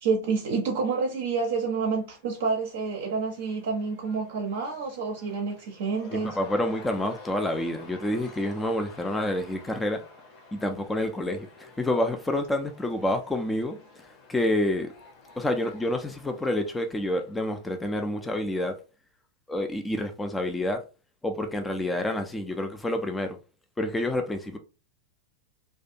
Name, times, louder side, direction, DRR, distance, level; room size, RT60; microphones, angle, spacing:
voice 1, 0.0-6.4, right 4 dB, 55° right, 0.5 m, -28 dB
Cheering / Crowd, 1.7-18.6, left 3 dB, 40° left, 0.8 m, -51 dB
voice 2, 6.1-10.0 10.5-13.8 14.3-14.9 15.4-18.7 19.5-20.8 21.2-23.4 23.8-24.6, left 1 dB, 10° left, 0.4 m, -28 dB
2.4 x 2.3 x 2.6 m
figure-of-eight pair, 90°, 0 cm